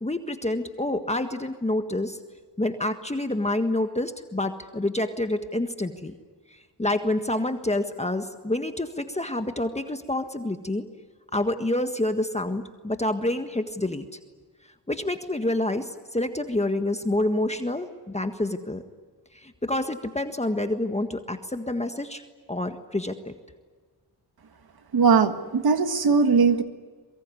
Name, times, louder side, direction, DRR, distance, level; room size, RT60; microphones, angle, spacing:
voice 1, 0.0-2.2 2.6-6.1 6.5-10.9 11.3-14.0 14.9-18.8 19.3-22.2 22.5-23.3, left 1 dB, 15° left, 7 dB, 1.6 m, -28 dB
voice 2, 24.9-26.6, right 5 dB, 60° right, 8 dB, 1.8 m, -20 dB
23.5 x 23.0 x 9.7 m, 1.4 s
cardioid pair, 75°, 42 cm